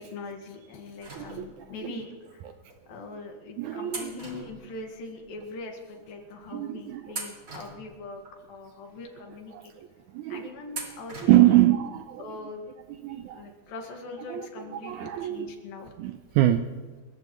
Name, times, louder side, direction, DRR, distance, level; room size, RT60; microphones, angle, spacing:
voice 1, 0.0-2.4 2.9-8.2 8.5-9.7 10.3-11.7 12.2-12.6 13.3-15.9, left 3 dB, 90° left, 3 dB, 3.6 m, -41 dB
sound 1, 1.0-1.8 2.7-2.8 3.9-5.3 5.6-5.7 6.4-6.7 7.1-8.4 8.9-9.0 10.7-11.7 12.0-12.1 13.2-13.3 13.6-13.7, right 3 dB, 30° right, 2.0 m, -41 dB
voice 2, 1.1-2.0 3.6-4.4 6.5-7.1 9.5-9.9 10.1-10.5 11.2-12.2 13.0-13.5 14.3-15.6 16.0-16.7, right 14 dB, 80° right, 9 dB, 1.7 m, -25 dB
29.0 x 14.5 x 3.1 m, 1.4 s
omnidirectional pair, 4.0 m